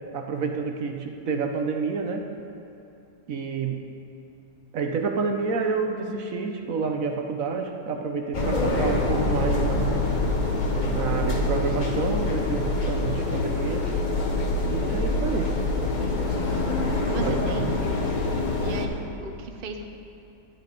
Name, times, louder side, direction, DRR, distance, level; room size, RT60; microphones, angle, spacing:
voice 1, 0.1-2.3 3.3-3.9 4.7-10.0 10.9-13.9 14.7-15.6 17.2-17.6, right 5 dB, 60° right, 4 dB, 1.1 m, -29 dB
sound 1, 8.3-18.9, left 2 dB, 35° left, 1.0 m, -25 dB
voice 2, 17.1-17.8 18.6-19.8, right 3 dB, 45° right, 4 dB, 0.8 m, -35 dB
12.0 x 10.0 x 5.2 m, 2.8 s
omnidirectional pair, 1.7 m